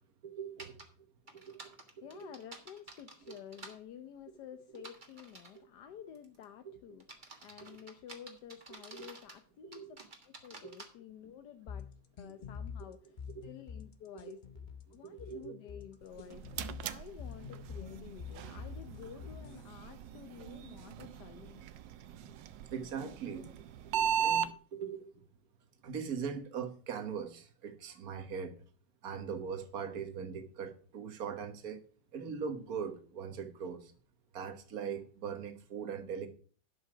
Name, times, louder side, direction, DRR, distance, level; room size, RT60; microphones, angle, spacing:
voice 1, 0.2-0.8 1.5-1.6 2.0-2.3 7.7-7.8 8.9-9.0 9.7-9.9 12.2-12.4 13.4-13.5 14.9-15.5 22.2-22.4 22.7-23.5 23.8-25.1 25.8-28.5 29.0-31.8 32.1-33.9 34.3-36.3, right 6 dB, 55° right, 8 dB, 1.7 m, -41 dB
sound 1, 0.6-0.8 1.3-3.8 4.7-5.6 6.1-6.4 7.0-9.4 9.7-10.9, right 3 dB, 30° right, 1.6 m, -51 dB
voice 2, 1.2-10.0 10.2-11.9 12.2-14.4 14.9-21.7, left 9 dB, 70° left, 8 dB, 1.3 m, -51 dB
sound 2, 11.7-19.7, left 6 dB, 45° left, 0.6 m, -46 dB
sound 3, 16.0-24.5, right 8 dB, 80° right, 1.4 m, -38 dB
11.5 x 5.6 x 5.9 m, 0.42 s
omnidirectional pair, 1.9 m